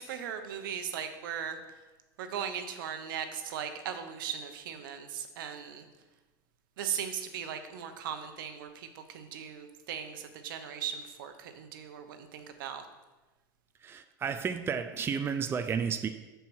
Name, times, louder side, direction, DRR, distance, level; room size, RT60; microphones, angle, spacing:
voice 1, 0.0-1.6 2.2-5.8 6.8-12.8, right 8 dB, 85° right, 8 dB, 0.9 m, -38 dB
voice 2, 13.8-16.1, right 6 dB, 20° right, 9 dB, 0.4 m, -32 dB
6.7 x 4.6 x 6.2 m, 1.1 s
supercardioid pair, 125°, 11 cm